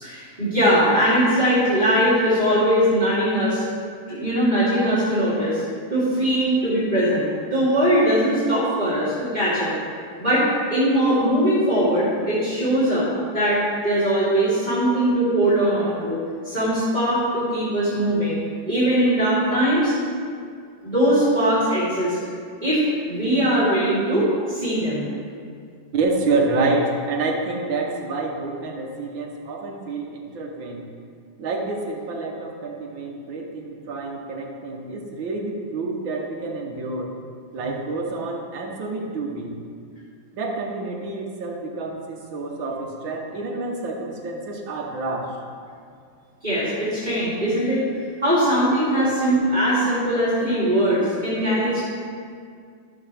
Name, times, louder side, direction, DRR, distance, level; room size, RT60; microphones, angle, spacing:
voice 1, 0.0-3.6 4.1-5.6 5.9-9.7 10.2-16.2 16.4-18.4 18.7-19.9 20.8-22.2 22.6-25.1 46.4-47.8 48.2-51.8, equal, 20° right, -13 dB, 2.6 m, -21 dB
voice 2, 25.9-30.8 31.4-37.1 37.5-39.6 40.3-45.4 48.9-49.1, right 3 dB, 85° right, 1 dB, 1.9 m, -28 dB
13.0 x 6.8 x 3.4 m, 2.2 s
omnidirectional pair, 2.1 m